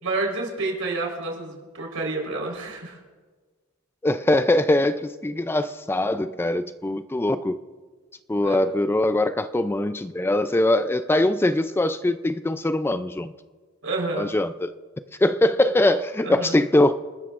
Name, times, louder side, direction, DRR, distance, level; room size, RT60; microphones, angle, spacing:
voice 1, 0.0-3.0 8.4-8.6 13.8-14.3 16.2-16.5, right 3 dB, 85° right, 0 dB, 4.1 m, -29 dB
voice 2, 4.0-7.6 8.3-13.3 14.2-14.7 15.2-17.0, left 1 dB, 10° left, 11 dB, 0.3 m, -22 dB
28.0 x 13.0 x 2.5 m, 1.4 s
head